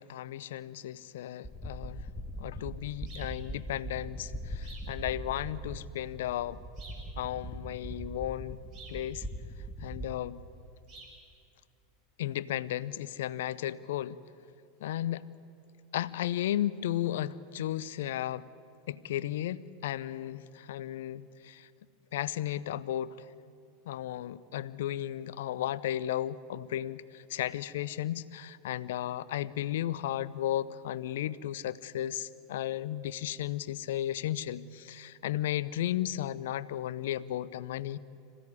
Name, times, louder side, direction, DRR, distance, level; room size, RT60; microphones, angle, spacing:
voice 1, 0.0-2.0 2.4-6.6 7.2-8.6 8.9-9.3 9.8-10.4 12.2-14.2 14.8-15.3 15.9-18.5 18.9-21.7 22.1-23.3 23.9-38.0, left 12 dB, 65° left, 18 dB, 0.7 m, -34 dB
sound 1, 1.4-10.1, equal, 10° left, 2.0 m, -41 dB
sound 2, 3.1-3.4 4.6-5.0 6.8-7.1 8.7-9.1 10.9-11.2, right 3 dB, 45° right, 6.8 m, -50 dB
26.0 x 16.0 x 9.8 m, 2.5 s
figure-of-eight pair, 85°, 0 cm